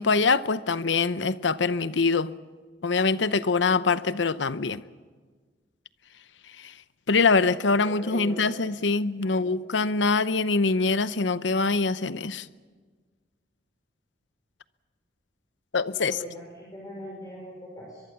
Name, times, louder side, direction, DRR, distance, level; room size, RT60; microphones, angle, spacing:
voice 1, 0.0-2.3 2.8-4.8 6.6-6.7 7.1-12.5 15.7-16.1, left 4 dB, 80° left, 0.8 m, -24 dB
voice 2, 7.8-8.6 9.2-9.6 16.0-18.0, equal, 20° left, 5.4 m, -41 dB
23.5 x 22.5 x 7.1 m
head